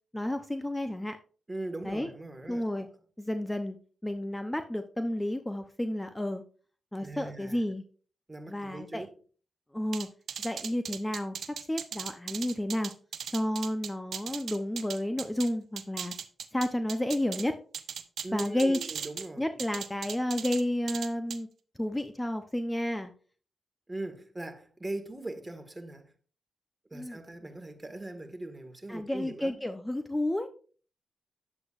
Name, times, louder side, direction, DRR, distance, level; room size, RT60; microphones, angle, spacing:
voice 1, 0.1-1.2 1.8-2.1 2.5-2.9 3.2-3.8 4.0-6.4 6.9-7.8 8.5-9.1 9.7-10.1 10.4-11.4 11.7-12.9 13.3-16.1 16.5-17.6 18.3-18.8 19.4-21.5 21.8-23.1 26.9-27.2 28.9-30.5, left 1 dB, 15° left, 0.8 m, -31 dB
voice 2, 1.5-2.9 7.0-7.6 8.3-9.1 18.2-19.4 23.9-26.1 26.9-29.6, right 2 dB, 20° right, 1.9 m, -40 dB
sound 1, 9.9-15.5 15.8-17.4 17.7-19.3 19.6-20.6 20.9-21.4, right 7 dB, 75° right, 0.6 m, -38 dB
9.9 x 7.7 x 2.6 m
supercardioid pair, 45°, 0 cm